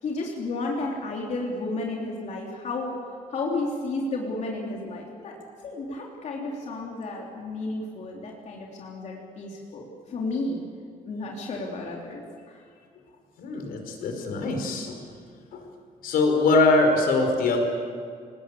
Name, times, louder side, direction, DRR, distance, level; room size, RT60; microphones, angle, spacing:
voice 1, 0.0-3.0 3.3-5.3 5.6-10.6 11.1-12.6, left 2 dB, 50° left, -1 dB, 3.5 m, -32 dB
voice 2, 13.4-15.0 15.5-15.6 16.0-17.6, left 2 dB, 80° left, 4 dB, 5.2 m, -22 dB
28.5 x 19.0 x 8.6 m, 2.2 s
cardioid pair, 155°, 15 cm